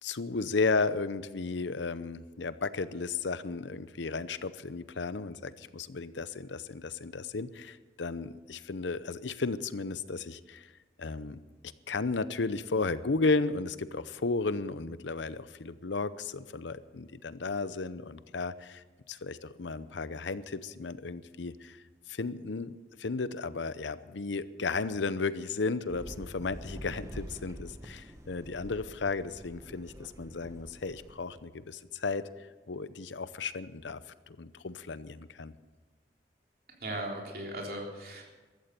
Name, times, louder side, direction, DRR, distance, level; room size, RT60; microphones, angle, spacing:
voice 1, 0.0-10.7 11.0-11.4 11.9-21.8 22.1-32.3 32.7-34.0 34.3-35.5, left 3 dB, 90° left, 15 dB, 0.7 m, -34 dB
sound 1, 25.9-31.3, equal, 15° right, 1.0 m, -46 dB
voice 2, 36.8-38.2, right 1 dB, 55° right, -1 dB, 3.6 m, -37 dB
15.0 x 13.5 x 6.8 m, 1.3 s
head